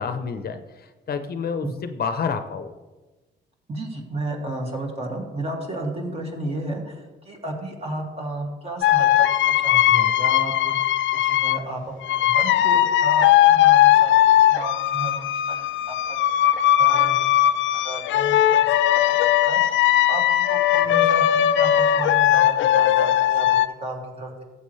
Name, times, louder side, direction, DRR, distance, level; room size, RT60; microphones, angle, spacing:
voice 1, 0.0-2.7, left 6 dB, 50° left, 8 dB, 0.8 m, -29 dB
voice 2, 3.7-17.3 17.7-24.4, right 1 dB, 30° right, 0 dB, 2.3 m, -33 dB
sound 1, 8.8-11.6 12.0-23.7, left 12 dB, 70° left, 0.5 m, -18 dB
13.5 x 8.0 x 3.3 m, 1.2 s
cardioid pair, 90°, 20 cm